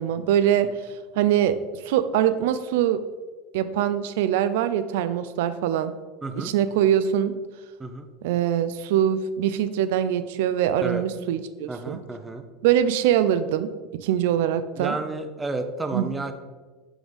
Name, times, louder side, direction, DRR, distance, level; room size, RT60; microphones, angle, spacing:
voice 1, 0.0-3.0 3.5-5.9 6.4-7.3 8.2-12.0 12.6-15.0 15.9-16.1, right 10 dB, 75° right, 12 dB, 0.3 m, -23 dB
voice 2, 6.2-6.5 7.8-8.1 10.8-11.0 11.7-12.4 14.8-16.3, right 2 dB, 15° right, 7 dB, 0.7 m, -31 dB
6.1 x 3.5 x 5.2 m, 1.3 s
supercardioid pair, 110°, 0 cm